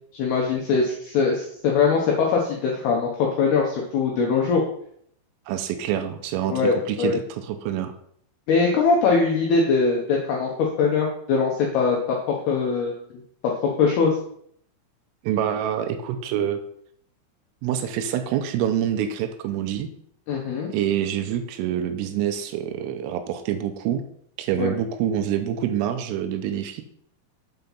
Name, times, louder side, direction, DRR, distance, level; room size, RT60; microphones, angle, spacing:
voice 1, 0.1-4.6 6.5-7.2 8.5-13.0 13.4-14.2 20.3-20.7 24.6-24.7, left 5 dB, 80° left, -1 dB, 2.3 m, -22 dB
voice 2, 5.5-6.5 6.9-7.9 15.2-16.6 17.6-19.9 20.7-24.0 24.4-26.8, right 10 dB, 85° right, 7 dB, 3.2 m, -26 dB
7.7 x 4.6 x 5.5 m, 0.67 s
omnidirectional pair, 6.0 m